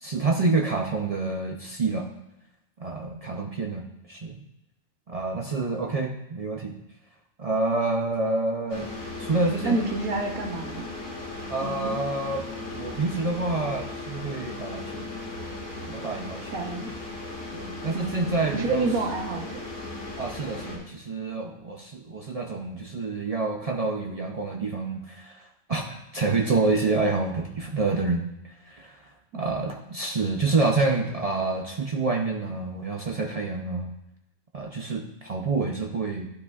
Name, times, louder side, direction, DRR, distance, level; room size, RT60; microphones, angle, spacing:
voice 1, 0.0-2.1 2.8-4.4 5.1-6.8 7.4-8.9 9.2-9.9 11.5-15.2 15.9-16.8 17.5-18.9 20.2-33.9 34.5-36.3, right 3 dB, 55° right, 2 dB, 0.4 m, -28 dB
sound 1, 8.7-20.8, left 2 dB, 60° left, 2.2 m, -37 dB
voice 2, 9.6-10.9 11.6-12.0 16.5-16.9 17.9-19.6 29.3-29.7, right 3 dB, 90° right, 3 dB, 1.5 m, -29 dB
11.0 x 8.3 x 2.4 m, 0.87 s
omnidirectional pair, 1.5 m